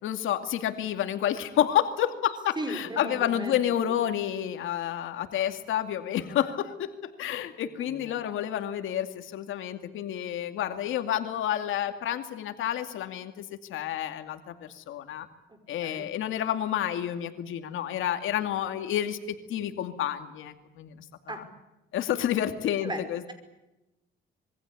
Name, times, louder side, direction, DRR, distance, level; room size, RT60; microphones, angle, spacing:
voice 1, 0.0-15.3 15.7-21.0 21.3-21.5 21.9-23.3, left 11 dB, 85° left, 7 dB, 2.4 m, -30 dB
voice 2, 2.6-3.6 7.8-8.2 15.8-16.1 21.3-21.4 22.8-23.0, right 1 dB, 20° right, 8 dB, 5.6 m, -36 dB
26.5 x 22.5 x 8.5 m, 0.98 s
cardioid pair, 110°, 20 cm